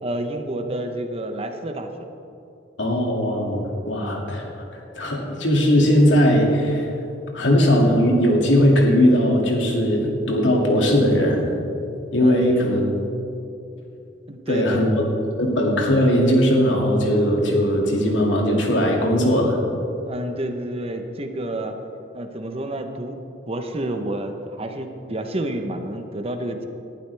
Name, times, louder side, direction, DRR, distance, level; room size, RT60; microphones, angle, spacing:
voice 1, 0.0-2.1 12.2-12.6 14.3-14.8 20.1-21.8 22.1-23.2 23.5-26.7, right 1 dB, 35° right, 6 dB, 0.9 m, -29 dB
voice 2, 2.8-4.5 4.7-6.9 7.3-11.5 12.1-12.8 14.5-15.0 15.4-19.6, equal, 90° left, 0 dB, 2.3 m, -19 dB
19.0 x 11.5 x 3.4 m, 2.7 s
head